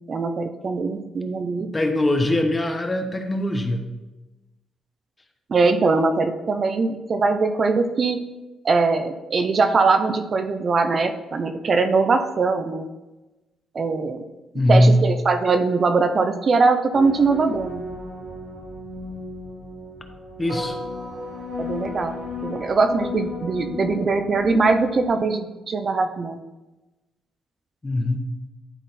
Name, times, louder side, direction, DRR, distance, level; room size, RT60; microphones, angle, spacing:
voice 1, 0.1-1.7 5.5-8.2 8.6-12.9 13.7-14.2 14.7-17.8 21.6-22.1 22.4-26.4, right 4 dB, 45° right, 7 dB, 0.7 m, -21 dB
voice 2, 1.7-3.8 14.5-14.9 20.4-20.8 27.8-28.2, left 1 dB, 20° left, 6 dB, 1.0 m, -20 dB
sound 1, 16.9-25.1, left 3 dB, 80° right, 1.9 m, -34 dB
11.5 x 4.0 x 4.2 m, 1.1 s
cardioid pair, 90°, 0 cm